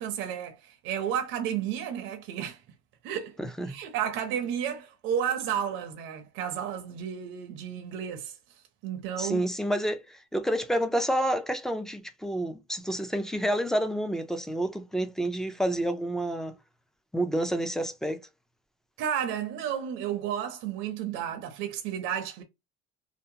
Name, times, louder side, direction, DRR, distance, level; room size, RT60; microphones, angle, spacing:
voice 1, 0.0-2.6 3.0-3.4 3.7-8.4 8.8-9.5 19.0-22.4, right 9 dB, 70° right, 0.6 m, -32 dB
voice 2, 3.4-3.8 9.2-16.5 17.1-18.2, right 1 dB, ahead, 0.3 m, -29 dB
2.7 x 2.0 x 2.6 m
cardioid pair, 140°, 21 cm